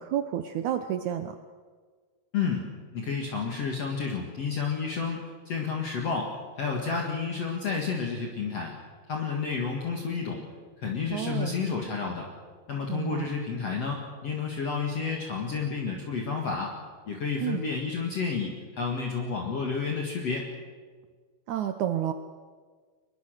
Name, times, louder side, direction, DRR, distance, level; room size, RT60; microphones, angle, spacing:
voice 1, 0.0-1.3 11.1-11.6 12.9-13.3 17.4-17.6 21.5-22.1, right 10 dB, 85° right, 8 dB, 1.7 m, -30 dB
voice 2, 2.3-8.7 9.1-10.4 10.8-12.3 12.7-16.7 17.1-20.5, left 5 dB, 45° left, 0 dB, 2.5 m, -31 dB
24.0 x 21.0 x 6.5 m, 1.5 s
omnidirectional pair, 4.5 m